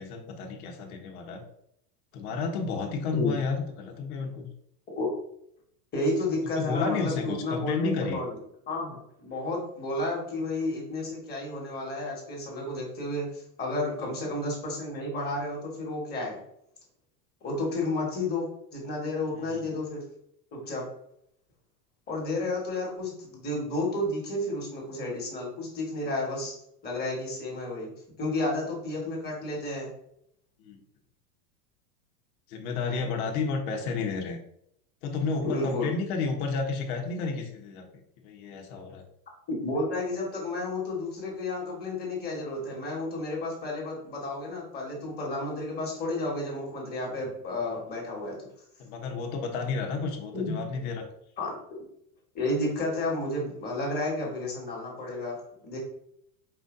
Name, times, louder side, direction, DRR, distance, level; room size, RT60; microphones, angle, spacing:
voice 1, 0.0-1.4 2.1-4.5 6.5-8.2 14.0-14.1 19.3-19.7 30.6-30.8 32.5-34.4 35.0-37.8 38.2-39.0 48.8-51.0, left 4 dB, 65° left, 3 dB, 1.1 m, -31 dB
voice 2, 5.9-8.4 8.7-16.4 17.4-20.0 20.5-20.8 22.1-26.5 26.8-27.9 28.2-29.9 35.4-35.9 39.5-48.5 50.3-50.5 51.4-51.5 52.3-55.4 55.6-55.8, left 2 dB, 20° left, -2 dB, 1.5 m, -31 dB
4.9 x 2.7 x 3.8 m, 0.72 s
supercardioid pair, 145°, 46 cm